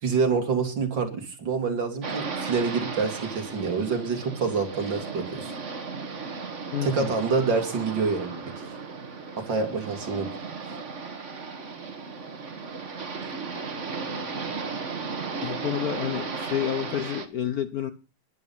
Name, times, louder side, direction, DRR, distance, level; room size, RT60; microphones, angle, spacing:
voice 1, 0.0-5.5 6.8-8.4 9.4-10.3, right 4 dB, 60° right, 3.1 m, -27 dB
sound 1, 2.0-17.3, right 4 dB, 40° right, 1.7 m, -35 dB
voice 2, 6.7-7.1 15.4-17.9, left 10 dB, 60° left, 1.1 m, -29 dB
12.5 x 11.0 x 5.6 m
omnidirectional pair, 2.3 m